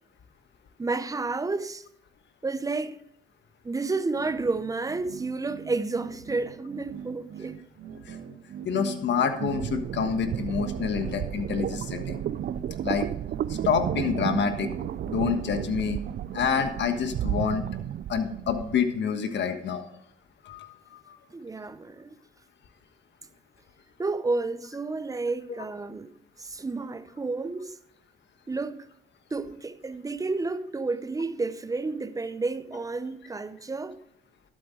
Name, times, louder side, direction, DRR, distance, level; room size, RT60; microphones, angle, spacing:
voice 1, 0.8-1.9 2.4-3.0 3.6-7.6 21.3-22.1 24.0-27.8 28.5-28.9 29.3-34.0, right 3 dB, 15° right, 0.7 m, -31 dB
sound 1, 4.1-16.7, right 8 dB, 75° right, 1.2 m, -41 dB
voice 2, 8.6-12.2 12.8-13.1 13.5-14.7 15.1-16.0 16.3-17.6 18.1-19.8 20.4-21.2, left 7 dB, 65° left, 1.4 m, -27 dB
sound 2, 9.4-18.8, right 11 dB, 50° right, 0.4 m, -33 dB
12.5 x 8.0 x 3.8 m
cardioid pair, 90°, 20 cm